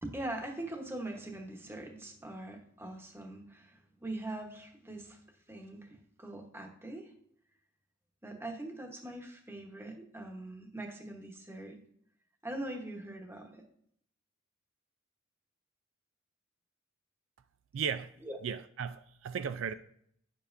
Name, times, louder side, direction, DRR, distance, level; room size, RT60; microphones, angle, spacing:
voice 1, 0.0-5.2 5.5-7.1 8.2-11.8 12.4-13.6 18.2-18.4, right 1 dB, 10° right, 1.0 m, -42 dB
voice 2, 17.7-18.1 18.4-19.7, right 7 dB, 70° right, 0.3 m, -35 dB
9.9 x 7.2 x 2.6 m
head